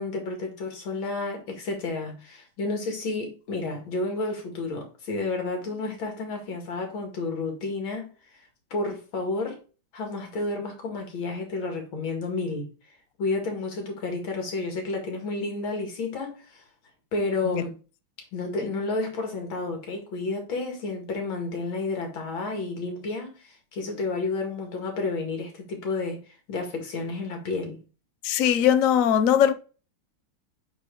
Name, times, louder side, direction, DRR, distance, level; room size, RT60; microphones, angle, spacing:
voice 1, 0.0-8.1 8.7-9.6 9.9-12.7 13.2-16.6 17.1-17.7 18.3-26.2 26.5-27.8, left 3 dB, 80° left, 2.6 m, -31 dB
voice 2, 28.2-29.5, left 9 dB, 65° left, 0.9 m, -20 dB
8.2 x 3.9 x 3.8 m
omnidirectional pair, 2.1 m